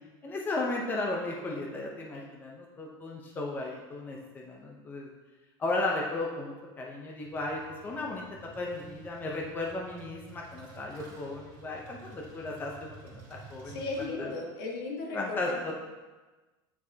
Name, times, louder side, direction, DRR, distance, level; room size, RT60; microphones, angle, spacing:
voice 1, 0.2-5.1 5.6-8.2 8.6-13.2 13.5-13.8 14.2-14.3 15.1-15.7, left 2 dB, 15° left, -1 dB, 0.7 m, -35 dB
sound 1, 7.2-14.1, right 4 dB, 50° right, 2.0 m, -52 dB
voice 2, 13.6-15.6, left 3 dB, 75° left, -1 dB, 1.5 m, -36 dB
8.7 x 4.7 x 2.8 m, 1.2 s
supercardioid pair, 155°, 12 cm